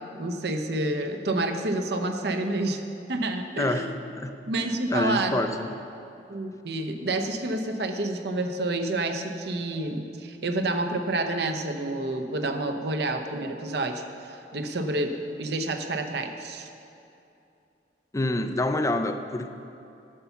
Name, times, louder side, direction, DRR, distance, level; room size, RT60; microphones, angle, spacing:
voice 1, 0.0-2.8 3.1-3.9 4.5-5.4 6.3-16.7, right 2 dB, 65° right, 6 dB, 0.8 m, -29 dB
voice 2, 3.6-3.9 4.2-4.4 4.9-5.8 18.1-19.5, left 1 dB, 20° left, 8 dB, 0.4 m, -27 dB
10.0 x 6.9 x 7.0 m, 2.7 s
head